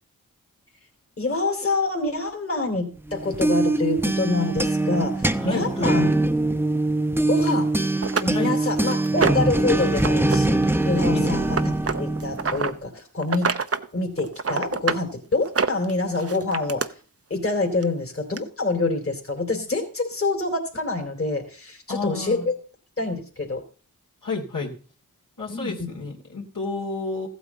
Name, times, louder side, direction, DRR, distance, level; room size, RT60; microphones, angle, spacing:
voice 1, 1.2-6.1 7.3-7.7 8.2-11.6 12.0-13.6 13.9-16.8 17.3-22.4 23.0-23.6 25.5-25.7, left 3 dB, 40° left, 2 dB, 2.7 m, -26 dB
sound 1, 3.1-12.7, right 2 dB, 5° right, 0.7 m, -23 dB
voice 2, 5.4-6.0 8.3-8.5 11.1-11.3 21.9-22.5 24.2-24.7 25.4-27.3, left 4 dB, 60° left, -3 dB, 2.8 m, -30 dB
sound 2, 7.5-7.6 8.0-9.6 9.9-10.4 10.6-12.7 13.2-13.9 14.2-15.0 15.4-16.9 17.8-17.9 18.4-18.5, right 5 dB, 40° right, 0.8 m, -26 dB
14.5 x 8.5 x 4.0 m, 0.39 s
cardioid pair, 40°, 35 cm